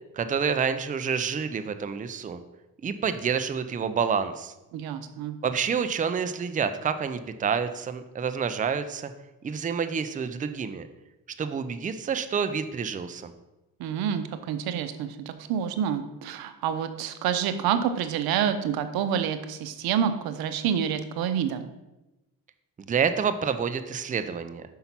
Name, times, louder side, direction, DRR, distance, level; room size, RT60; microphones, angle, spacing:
voice 1, 0.1-2.4 2.8-4.5 5.4-9.1 9.4-10.9 11.4-13.3 22.9-24.6, right 6 dB, 20° right, 10 dB, 0.5 m, -28 dB
voice 2, 4.7-5.4 13.8-21.7, right 8 dB, 85° right, 9 dB, 0.8 m, -28 dB
5.6 x 5.5 x 5.9 m, 1.0 s
cardioid pair, 100°, 35 cm